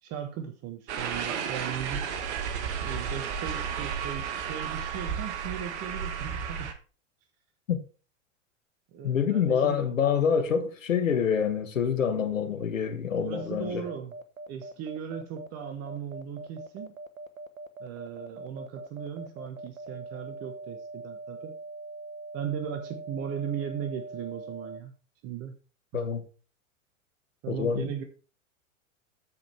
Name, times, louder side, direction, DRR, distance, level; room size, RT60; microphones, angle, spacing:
voice 1, 0.0-2.2 2.8-6.7 8.9-9.9 12.1-12.4 13.2-14.1 14.5-17.0 17.8-21.5 22.3-24.9 25.2-25.5 25.9-26.0 27.4-28.0, right 8 dB, 40° right, 1.3 m, -37 dB
sound 1, 0.9-6.7, right 7 dB, 60° right, 1.4 m, -33 dB
voice 2, 9.0-13.8 25.9-26.2 27.5-27.9, left 7 dB, 75° left, 1.6 m, -26 dB
sound 2, 13.1-24.8, right 3 dB, 90° right, 1.1 m, -42 dB
13.5 x 5.2 x 3.4 m
figure-of-eight pair, 95°, 39 cm